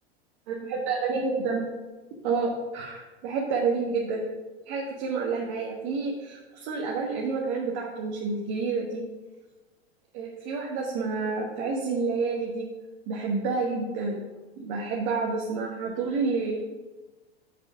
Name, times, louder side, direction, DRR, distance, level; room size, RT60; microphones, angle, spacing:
voice 1, 0.5-1.6 2.2-4.3 4.7-9.0 10.1-12.7 13.1-14.2 14.6-16.6, right 4 dB, 50° right, -2 dB, 1.4 m, -29 dB
6.6 x 5.1 x 5.5 m, 1.2 s
hypercardioid pair, 100°, 31 cm